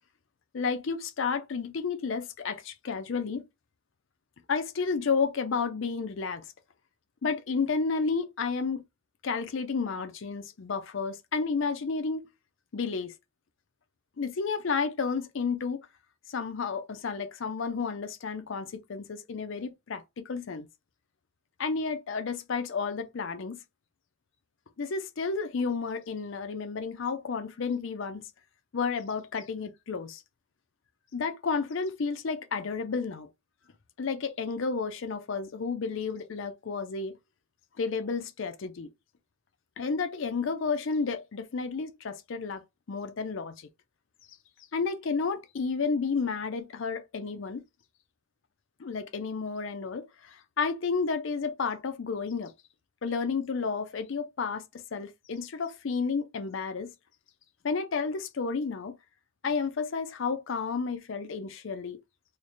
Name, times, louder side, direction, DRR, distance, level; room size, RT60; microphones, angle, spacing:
voice 1, 0.5-3.4 4.5-6.4 7.2-8.8 9.2-12.3 12.7-13.1 14.2-15.8 16.3-20.7 21.6-23.6 24.8-28.3 28.7-30.2 31.1-33.3 34.0-37.1 37.8-38.9 39.8-42.6 42.9-43.7 44.7-47.6 48.8-52.5 53.0-56.9 57.6-59.0 59.4-62.0, left 5 dB, 60° left, 0.5 m, -31 dB
3.2 x 2.1 x 4.0 m
head